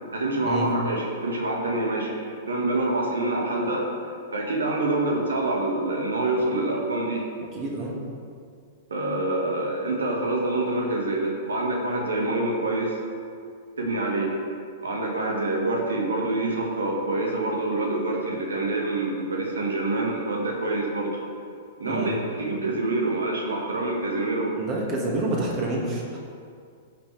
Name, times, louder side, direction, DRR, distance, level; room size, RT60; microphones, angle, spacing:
voice 1, 0.1-3.9 4.3-7.2 8.9-13.0 13.8-14.3 14.8-21.2 21.8-24.5, right 2 dB, 70° right, -1 dB, 1.9 m, -26 dB
voice 2, 7.5-7.9 21.9-22.1 24.6-26.2, right 2 dB, 35° right, -2 dB, 2.2 m, -28 dB
14.5 x 6.2 x 3.5 m, 2.2 s
figure-of-eight pair, 105°, 0 cm